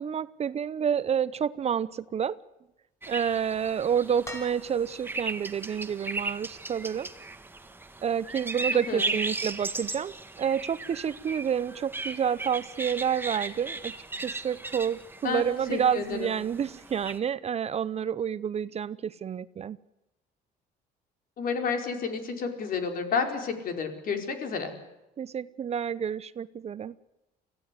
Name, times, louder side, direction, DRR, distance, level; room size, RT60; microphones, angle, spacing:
voice 1, 0.0-2.4 3.1-7.1 8.0-19.8 25.2-26.9, right 8 dB, 40° right, 17 dB, 0.7 m, -29 dB
sound 1, 3.0-17.2, right 3 dB, 10° right, 1.6 m, -37 dB
sound 2, 4.2-5.3 6.8-6.9, equal, 15° left, 6.6 m, -42 dB
voice 2, 15.7-16.3 21.4-24.7, left 5 dB, 55° left, 5 dB, 4.4 m, -30 dB
24.0 x 15.5 x 9.7 m, 0.97 s
cardioid pair, 110°, 17 cm